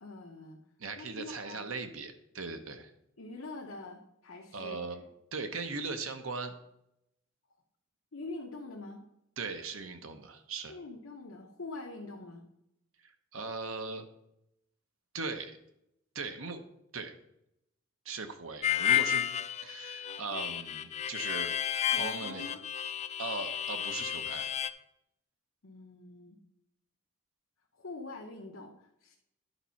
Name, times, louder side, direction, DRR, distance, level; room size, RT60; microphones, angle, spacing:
voice 1, 0.0-0.6 1.0-1.7 3.2-5.0 8.1-9.0 10.7-12.4 21.8-22.6 25.6-26.4 27.7-29.1, left 2 dB, 75° left, 0 dB, 1.0 m, -44 dB
voice 2, 0.8-2.9 4.5-5.0 5.3-6.6 9.4-10.8 13.0-14.1 15.1-15.6 16.1-16.6 16.9-17.1 18.0-19.3 19.6-21.6 22.0-22.5 23.2-24.5, right 4 dB, 80° right, 8 dB, 1.0 m, -39 dB
Harmonica, 18.6-24.7, left 10 dB, 30° left, 0.3 m, -32 dB
11.0 x 4.2 x 5.7 m, 0.80 s
head